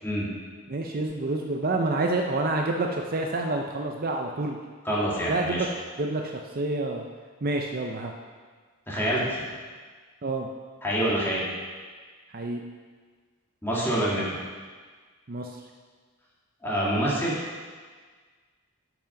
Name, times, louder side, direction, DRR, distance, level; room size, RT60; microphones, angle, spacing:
voice 1, 0.7-4.6 5.3-5.7 6.0-7.1 7.4-8.1 10.2-10.5 12.3-12.6 15.3-15.5, right 2 dB, 40° right, 2 dB, 0.6 m, -28 dB
voice 2, 4.8-5.6 8.9-9.3 10.8-11.4 13.6-14.2 16.6-17.4, equal, 10° left, -7 dB, 2.1 m, -26 dB
8.7 x 6.1 x 5.8 m, 1.5 s
head